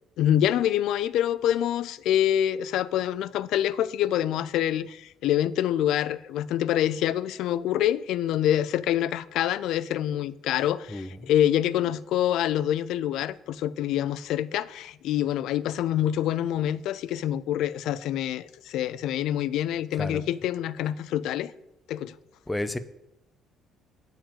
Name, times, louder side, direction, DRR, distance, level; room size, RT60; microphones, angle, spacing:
voice 1, 0.2-21.5 21.9-22.1, left 11 dB, 70° left, 0.4 m, -26 dB
voice 2, 10.9-11.3 20.0-20.2 22.5-22.8, left 1 dB, 10° left, 0.4 m, -31 dB
8.9 x 4.7 x 7.3 m
cardioid pair, 135°, 0 cm